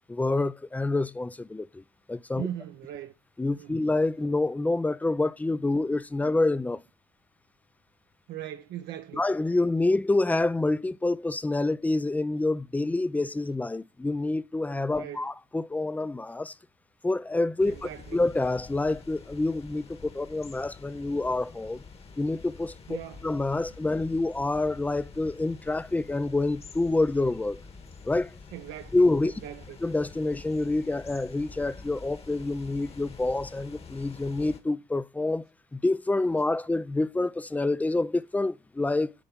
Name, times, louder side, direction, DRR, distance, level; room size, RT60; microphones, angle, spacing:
voice 1, 0.1-1.8 2.1-2.5 3.4-6.8 9.1-16.5 17.0-21.8 22.2-23.0 23.2-27.6 28.0-28.3 28.9-29.3 29.8-35.4 35.7-39.1, left 2 dB, 10° left, 0.5 m, -27 dB
voice 2, 2.3-3.1 3.6-3.8 8.3-9.2 14.9-15.2 17.7-18.2 22.9-23.2 28.5-28.9 29.2-29.8, right 11 dB, 75° right, 0.9 m, -39 dB
sound 1, 17.6-34.6, left 4 dB, 35° left, 1.6 m, -47 dB
9.9 x 3.5 x 5.2 m
cardioid pair, 110°, 17 cm